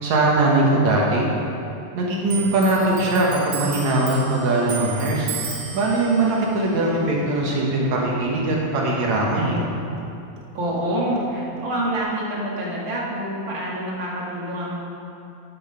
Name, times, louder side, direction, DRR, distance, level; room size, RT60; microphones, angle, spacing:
voice 1, 0.0-1.3 2.0-5.3 5.7-9.7, right 2 dB, 60° right, -3 dB, 2.3 m, -21 dB
Clock, 2.3-9.3 9.6-10.9 11.2-12.0, right 7 dB, 80° right, 1.5 m, -36 dB
voice 2, 10.5-14.8, right 1 dB, 45° right, -5 dB, 1.8 m, -26 dB
10.5 x 7.3 x 5.6 m, 2.6 s
omnidirectional pair, 4.1 m